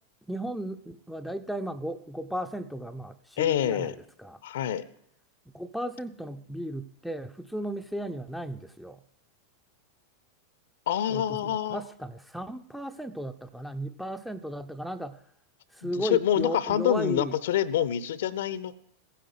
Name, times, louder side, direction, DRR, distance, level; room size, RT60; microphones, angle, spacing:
voice 1, 0.2-4.4 5.5-9.0 11.1-15.2 15.7-17.4, equal, ahead, 9 dB, 0.7 m, -35 dB
voice 2, 3.4-3.9 4.4-4.8 10.9-11.8 15.8-18.7, left 10 dB, 60° left, 17 dB, 0.8 m, -27 dB
15.5 x 10.0 x 7.7 m, 0.69 s
figure-of-eight pair, 90°, 0 cm